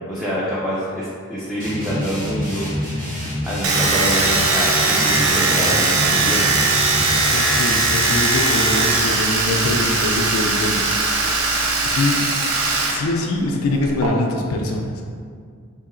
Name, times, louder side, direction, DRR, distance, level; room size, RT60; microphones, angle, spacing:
voice 1, 0.1-2.7 2.9-6.5, equal, ahead, -9 dB, 0.4 m, -26 dB
sound 1, 1.6-8.2, left 1 dB, 40° right, 1.4 m, -27 dB
Domestic sounds home sounds, 3.6-13.0 13.2-14.1, right 3 dB, 70° right, 0.5 m, -19 dB
voice 2, 7.3-11.2 11.8-12.2 12.9-15.0, left 2 dB, 75° left, 0 dB, 0.4 m, -23 dB
3.9 x 2.8 x 2.5 m, 2.1 s
head